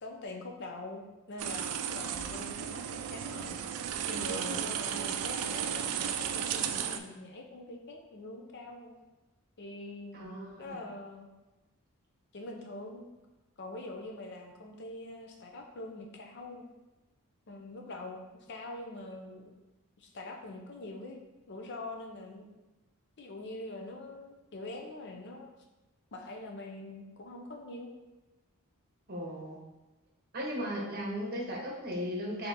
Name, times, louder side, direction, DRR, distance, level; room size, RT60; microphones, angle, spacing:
voice 1, 0.0-2.8 3.1-3.6 4.1-8.9 9.6-10.3 10.6-11.3 12.3-13.1 13.6-16.7 17.5-19.4 20.0-21.2 21.5-22.5 23.2-25.5 26.1-27.9, left 2 dB, 50° left, 2 dB, 0.5 m, -44 dB
sound 1, 1.4-7.0, right 8 dB, 90° right, 0.3 m, -34 dB
voice 2, 10.1-10.8 29.1-29.6 30.3-32.5, equal, 45° right, -2 dB, 0.9 m, -36 dB
3.7 x 2.8 x 4.0 m, 1.1 s
head